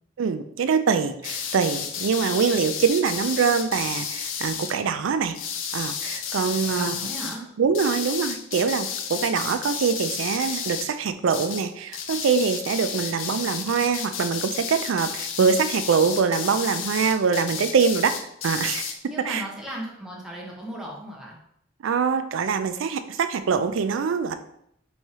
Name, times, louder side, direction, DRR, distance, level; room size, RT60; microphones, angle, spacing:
voice 1, 0.2-5.4 5.7-7.0 7.6-18.1 18.4-18.9 19.3-19.4 21.8-24.3, right 6 dB, 85° right, 10 dB, 0.4 m, -24 dB
sound 1, 1.2-4.8 5.3-7.4 7.7-11.0 11.3-11.7 11.9-19.0, left 7 dB, 80° left, 0.5 m, -32 dB
voice 2, 6.6-7.4 19.1-21.4, right 1 dB, 5° right, -3 dB, 0.9 m, -36 dB
3.5 x 3.2 x 4.2 m, 0.73 s
head